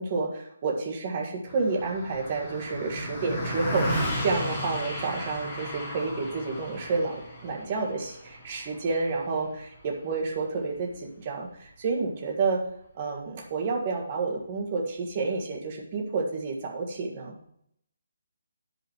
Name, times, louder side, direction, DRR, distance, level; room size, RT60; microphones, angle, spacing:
voice 1, 0.0-12.6 13.0-17.4, right 4 dB, 30° right, 1 dB, 1.6 m, -30 dB
Car passing by, 1.5-11.1, equal, 5° left, 2.2 m, -35 dB
11.5 x 5.5 x 4.7 m, 0.70 s
hypercardioid pair, 170°, 0 cm